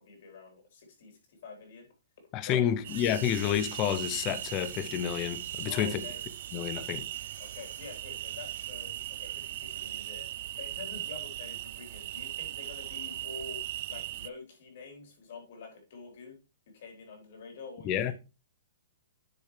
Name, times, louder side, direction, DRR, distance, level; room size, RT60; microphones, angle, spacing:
voice 1, 0.0-1.9 2.5-2.6 5.7-6.2 7.4-10.3 10.6-13.6 13.9-16.4 16.7-18.1, left 4 dB, 55° left, 3.8 m, -47 dB
voice 2, 2.3-6.0 6.5-7.1 17.8-18.1, left 10 dB, 25° left, 0.7 m, -29 dB
sound 1, 2.8-14.3, right 14 dB, 45° right, 0.3 m, -39 dB
sound 2, 2.9-10.1, right 6 dB, 90° right, 1.9 m, -50 dB
10.5 x 5.2 x 3.3 m
hypercardioid pair, 160°, 0 cm